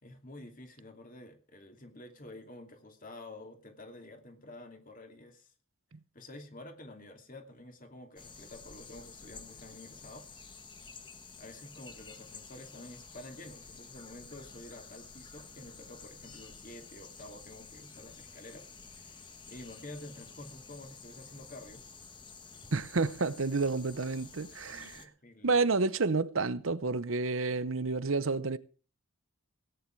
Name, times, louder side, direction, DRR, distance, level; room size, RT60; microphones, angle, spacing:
voice 1, 0.0-5.5 6.1-10.3 11.4-18.7 18.9-21.8 22.5-22.7 24.7-25.6, left 1 dB, 40° left, 2.7 m, -49 dB
sound 1, 8.2-25.1, left 5 dB, 20° left, 1.3 m, -51 dB
voice 2, 22.7-25.0 25.4-28.6, right 3 dB, 70° right, 0.8 m, -30 dB
17.5 x 10.0 x 4.6 m
head